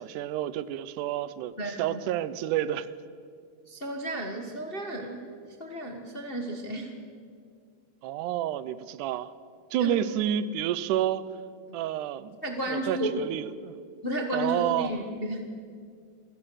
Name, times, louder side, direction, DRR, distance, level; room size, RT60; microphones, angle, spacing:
voice 1, 0.0-2.9 8.0-9.3 9.7-11.3 11.7-12.4 12.7-13.7 14.3-14.9, right 11 dB, 85° right, 16 dB, 2.2 m, -29 dB
voice 2, 1.6-2.0 3.7-5.3 5.6-6.9 9.8-10.0 11.7-11.8 12.4-13.1 14.0-15.5, right 1 dB, 35° left, 3 dB, 0.9 m, -33 dB
27.5 x 16.5 x 6.3 m, 2.2 s
omnidirectional pair, 3.5 m